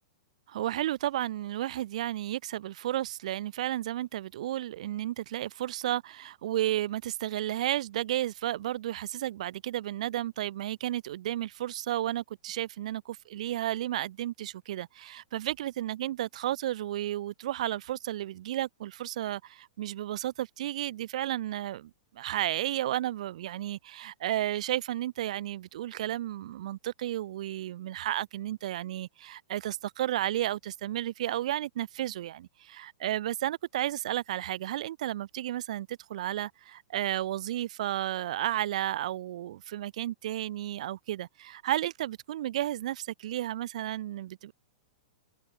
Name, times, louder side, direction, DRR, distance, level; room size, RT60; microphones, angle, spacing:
voice 1, 0.5-44.5, right 13 dB, 60° right, 1.2 m, -33 dB
hypercardioid pair, 150°, 4 cm